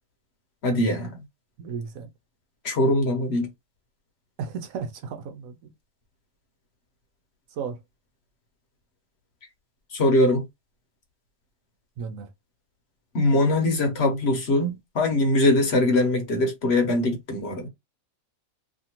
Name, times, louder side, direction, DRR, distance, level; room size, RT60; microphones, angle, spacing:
voice 1, 0.6-1.2 2.6-3.5 9.9-10.5 13.1-17.7, left 1 dB, 55° left, 0.9 m, -22 dB
voice 2, 1.6-2.1 4.4-5.7 7.6-7.8 12.0-12.3, right 6 dB, 75° right, 1.1 m, -34 dB
2.8 x 2.5 x 2.8 m
omnidirectional pair, 1.5 m